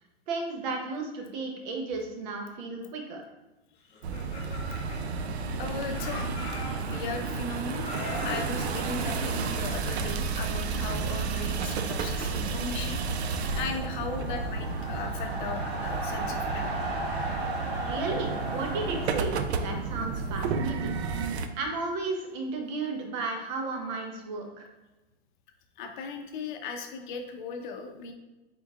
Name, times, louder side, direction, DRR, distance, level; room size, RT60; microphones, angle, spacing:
voice 1, 0.3-3.2 17.8-21.0 21.6-24.7, right 3 dB, 45° right, 2 dB, 0.9 m, -34 dB
Laughter, 3.9-5.6 5.9-7.4 7.8-10.1, left 3 dB, 20° left, 0.8 m, -41 dB
sound 1, 4.0-21.5, right 4 dB, 85° right, 0.5 m, -32 dB
voice 2, 5.6-6.3 6.8-7.9 8.2-13.0 13.6-16.7 25.8-28.1, left 4 dB, 50° left, 5 dB, 0.7 m, -37 dB
sound 2, 11.4-19.1, right 1 dB, 70° right, 1.1 m, -37 dB
4.0 x 3.7 x 2.4 m, 1.0 s
hypercardioid pair, 135°, 32 cm